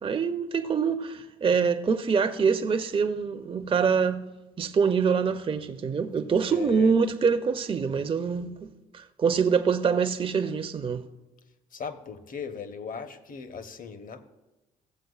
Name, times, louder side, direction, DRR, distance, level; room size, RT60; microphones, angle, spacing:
voice 1, 0.0-4.2 4.6-8.5 8.9-11.0, right 6 dB, 25° right, 0.6 m, -25 dB
voice 2, 6.5-6.9 11.7-14.2, left 6 dB, 45° left, 0.9 m, -38 dB
15.5 x 7.6 x 2.4 m
hypercardioid pair, 55°, 20 cm